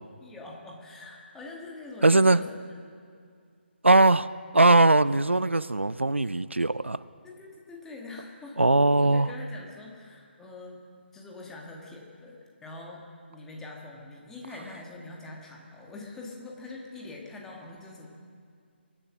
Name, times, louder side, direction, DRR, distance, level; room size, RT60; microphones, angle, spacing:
voice 1, 0.2-2.5 7.2-8.6 9.0-10.8 11.1-13.0 13.3-18.1, left 3 dB, 5° left, -1 dB, 1.6 m, -43 dB
voice 2, 2.0-2.4 3.8-7.0 8.6-9.3, right 2 dB, 90° right, 17 dB, 0.4 m, -20 dB
23.0 x 7.8 x 6.3 m, 2.2 s
figure-of-eight pair, 145°, 6 cm